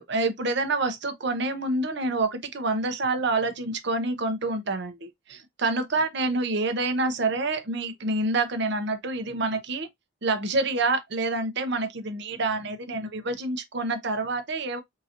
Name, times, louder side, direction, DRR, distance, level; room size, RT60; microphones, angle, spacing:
voice 1, 0.0-9.9 10.2-14.8, right 2 dB, 55° right, 0.8 m, -27 dB
3.8 x 2.9 x 2.5 m
head